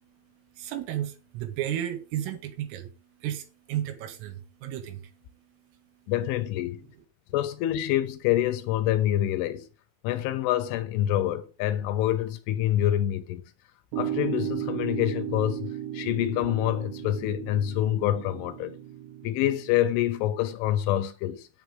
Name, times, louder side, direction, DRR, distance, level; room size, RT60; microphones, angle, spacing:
voice 1, 0.6-2.9 3.2-5.0, right 11 dB, 85° right, 4.4 m, -33 dB
voice 2, 6.1-6.8 7.3-9.7 10.0-13.4 14.0-18.8 19.2-21.5, left 13 dB, 80° left, 3.5 m, -26 dB
sound 1, 13.9-20.3, right 11 dB, 65° right, 3.8 m, -35 dB
10.5 x 9.5 x 5.0 m
omnidirectional pair, 5.7 m